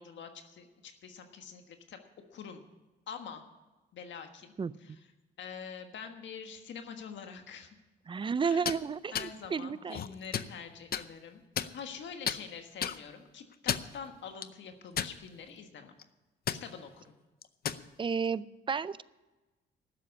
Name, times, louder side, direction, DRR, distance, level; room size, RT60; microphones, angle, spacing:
voice 1, 0.0-2.0 2.3-2.6 3.1-3.4 3.9-4.5 4.8-5.0 5.4-7.7 8.4-8.7 9.1-11.4 11.7-16.0 16.5-17.1, left 6 dB, 70° left, 6 dB, 1.5 m, -45 dB
voice 2, 8.1-10.0 18.0-19.0, right 6 dB, 25° right, 18 dB, 0.5 m, -32 dB
sound 1, 8.5-8.8 9.1-9.3 9.9-10.5 10.9-11.0 11.6-12.0 12.3-12.4 12.8-13.0 13.5-13.9 14.4-14.5 15.0-15.5 15.8-16.0 16.5-16.6 17.4-17.8, left 9 dB, 50° left, 0.7 m, -33 dB
12.0 x 7.6 x 9.5 m, 1.1 s
cardioid pair, 90°, 20 cm